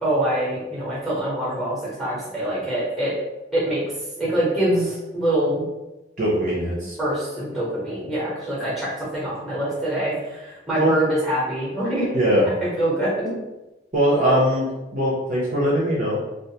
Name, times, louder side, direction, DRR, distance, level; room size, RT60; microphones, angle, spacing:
voice 1, 0.0-3.1 3.5-3.8 4.2-5.7 7.0-12.1 12.6-13.3, right 1 dB, ahead, -7 dB, 0.9 m, -24 dB
voice 2, 6.2-7.0 10.7-10.9 12.1-12.4 13.9-14.7 14.9-16.2, equal, 40° right, -6 dB, 0.6 m, -20 dB
2.4 x 2.4 x 2.8 m, 1.0 s
head